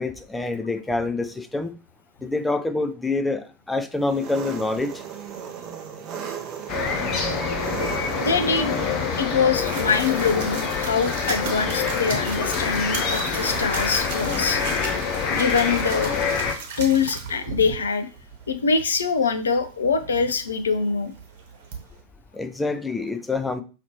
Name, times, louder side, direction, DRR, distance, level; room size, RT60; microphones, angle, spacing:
voice 1, 0.0-1.7 2.2-4.9 22.3-23.6, left 3 dB, 10° left, 0.4 m, -26 dB
Engine, 4.0-9.3, right 7 dB, 30° right, 0.7 m, -36 dB
sound 1, 6.7-16.5, left 5 dB, 35° left, 0.8 m, -26 dB
voice 2, 8.2-8.7 9.2-14.6 15.3-16.1 16.8-18.1 18.5-21.1, left 5 dB, 70° left, 0.5 m, -23 dB
sound 2, 9.6-22.0, right 5 dB, 50° right, 1.2 m, -36 dB
5.7 x 2.9 x 2.9 m
figure-of-eight pair, 90°, 0 cm